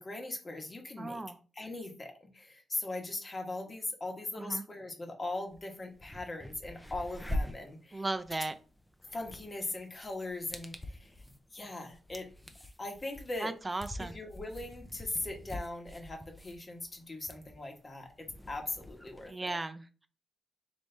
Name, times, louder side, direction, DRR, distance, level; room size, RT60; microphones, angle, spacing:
voice 1, 0.0-1.2 1.5-8.0 9.0-11.2 11.5-12.3 12.8-13.5 14.0-19.6, left 2 dB, 35° left, 1.3 m, -40 dB
voice 2, 1.0-1.4 4.4-4.6 7.9-8.5 13.4-14.2 19.3-20.1, right 2 dB, 25° right, 0.5 m, -36 dB
sound 1, 5.5-5.6 5.9-19.3, left 1 dB, 10° left, 0.7 m, -44 dB
4.1 x 3.1 x 3.4 m
supercardioid pair, 60°, 0 cm